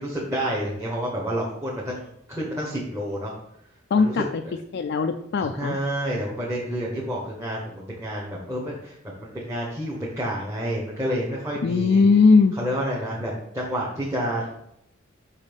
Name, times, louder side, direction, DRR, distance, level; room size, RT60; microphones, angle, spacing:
voice 1, 0.0-3.3 4.0-4.1 5.6-12.0 12.6-14.5, equal, 15° right, -5 dB, 1.2 m, -29 dB
voice 2, 3.9-4.4 4.7-5.8 11.6-12.5, left 4 dB, 55° left, 5 dB, 0.4 m, -19 dB
5.8 x 4.1 x 5.2 m, 0.75 s
head